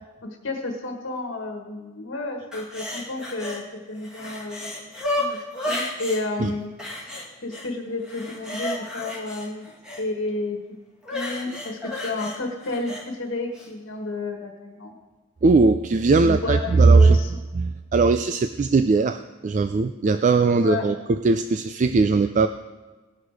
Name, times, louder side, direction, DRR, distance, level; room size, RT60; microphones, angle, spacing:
voice 1, 0.2-4.9 5.2-5.4 5.6-6.7 7.4-9.7 10.0-10.6 11.1-14.9 16.2-17.3 20.6-20.9, left 2 dB, 65° left, 2 dB, 1.5 m, -31 dB
sound 1, 2.5-3.6 4.0-6.2 6.8-7.7 8.0-10.0 11.0-13.0 13.5-13.7, left 1 dB, 5° right, 1.7 m, -32 dB
voice 2, 15.4-17.2 17.5-22.5, right 3 dB, 35° right, 9 dB, 0.3 m, -19 dB
18.0 x 6.5 x 4.7 m, 1.2 s
head